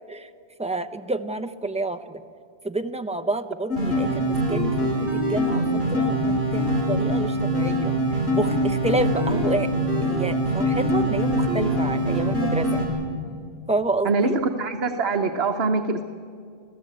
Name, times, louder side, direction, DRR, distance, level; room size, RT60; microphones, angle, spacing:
voice 1, 0.6-2.2 2.6-12.8 13.7-14.4, right 2 dB, 5° right, 6 dB, 0.7 m, -29 dB
sound 1, 3.7-12.8, equal, 80° left, 6.2 m, -23 dB
voice 2, 14.0-16.0, right 3 dB, 70° right, 4 dB, 1.2 m, -23 dB
25.5 x 16.0 x 8.5 m, 2.4 s
omnidirectional pair, 1.1 m